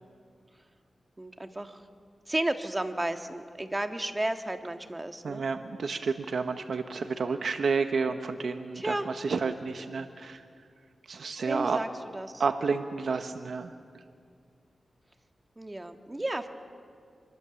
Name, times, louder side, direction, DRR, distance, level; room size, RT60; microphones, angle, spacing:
voice 1, 1.2-1.9 2.3-5.4 8.8-9.1 11.5-11.9 12.1-12.4 15.6-16.5, right 1 dB, 20° right, 6 dB, 1.6 m, -33 dB
voice 2, 5.2-10.4 11.1-11.8 12.4-13.7, right 4 dB, 75° right, 7 dB, 1.0 m, -30 dB
25.0 x 21.5 x 7.1 m, 2.2 s
cardioid pair, 65°, 0 cm